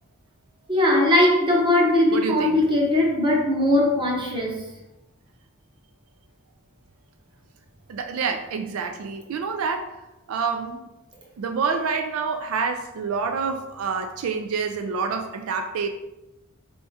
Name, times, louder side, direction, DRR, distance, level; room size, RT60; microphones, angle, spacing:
voice 1, 0.7-4.6, left 1 dB, 25° right, -2 dB, 0.9 m, -20 dB
voice 2, 2.1-2.6 7.9-10.0 10.3-10.9 11.4-15.9, right 5 dB, 80° right, 6 dB, 0.4 m, -27 dB
4.2 x 3.5 x 2.8 m, 0.94 s
head